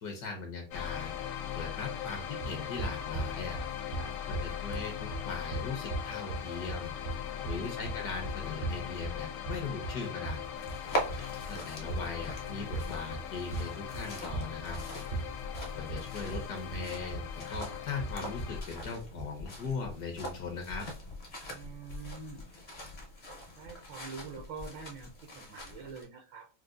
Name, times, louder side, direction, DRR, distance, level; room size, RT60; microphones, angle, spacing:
voice 1, 0.0-1.1 1.5-3.6 4.3-6.9 7.4-10.4 11.5-14.8 15.7-17.2 17.5-20.9, left 4 dB, 65° left, 3 dB, 1.2 m, -39 dB
sound 1, 0.7-18.6, left 9 dB, 90° left, 0.7 m, -40 dB
sound 2, 2.4-19.4, right 3 dB, 65° right, 0.5 m, -39 dB
voice 2, 7.1-7.8 21.5-22.5 23.6-26.5, right 5 dB, 85° right, 0 dB, 1.4 m, -46 dB
sound 3, 10.5-26.0, equal, 45° left, 0.6 m, -42 dB
4.6 x 2.1 x 2.4 m, 0.35 s
omnidirectional pair, 2.0 m